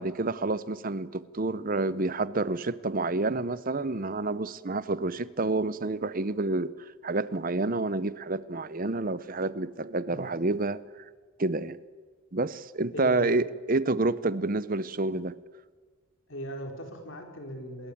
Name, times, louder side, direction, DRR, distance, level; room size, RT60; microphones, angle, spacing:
voice 1, 0.0-10.8 11.4-11.8 12.3-15.4, right 2 dB, 40° right, 17 dB, 0.8 m, -29 dB
voice 2, 12.9-13.3 16.3-17.9, equal, 60° left, 4 dB, 4.5 m, -39 dB
27.0 x 22.0 x 8.7 m, 1.5 s
head